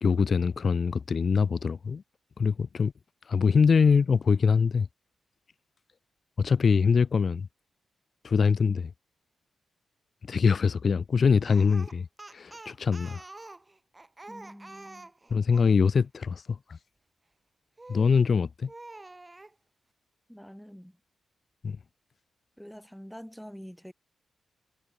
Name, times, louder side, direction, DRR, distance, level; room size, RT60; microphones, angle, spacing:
voice 1, 0.0-2.0 2.4-2.9 3.3-4.9 6.4-7.5 8.2-8.9 10.3-12.1 12.3-13.2 15.3-16.8 17.9-18.7 21.6-21.8, left 5 dB, 55° left, 0.8 m, -23 dB
Speech, 11.4-15.8 17.8-18.2 18.7-19.5, right 2 dB, 20° right, 5.4 m, -47 dB
voice 2, 14.3-15.1 20.3-21.0 22.6-23.9, equal, ahead, 7.9 m, -46 dB
cardioid pair, 75°, 0 cm